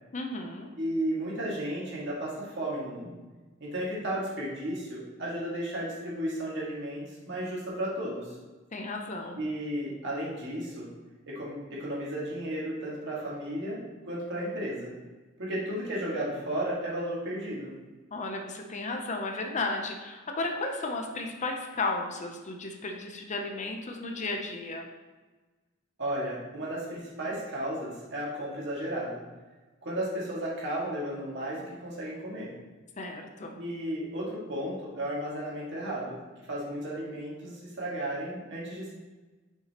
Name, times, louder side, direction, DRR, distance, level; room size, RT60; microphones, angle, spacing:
voice 1, 0.1-0.7 8.7-9.4 18.1-24.9 33.0-33.6, left 3 dB, 35° left, 3 dB, 0.6 m, -34 dB
voice 2, 0.8-3.2 3.6-8.4 9.4-10.9 11.3-13.8 14.0-14.9 15.4-17.7 26.0-29.2 29.8-32.5 33.6-36.2 36.5-38.9, right 1 dB, 60° right, -5 dB, 1.9 m, -34 dB
6.0 x 5.8 x 2.9 m, 1.3 s
head